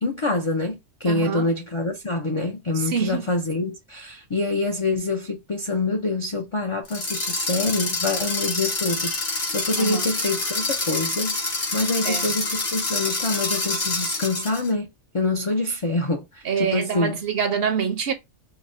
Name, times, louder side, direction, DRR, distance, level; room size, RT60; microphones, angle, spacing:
voice 1, 0.0-17.2, left 2 dB, 50° left, 0.3 m, -26 dB
voice 2, 1.1-1.5 2.9-3.2 9.8-10.1 12.0-12.3 16.4-18.1, right 7 dB, 60° right, 0.8 m, -25 dB
sound 1, 6.8-14.7, left 3 dB, 75° left, 1.6 m, -27 dB
4.8 x 2.0 x 2.5 m
omnidirectional pair, 1.3 m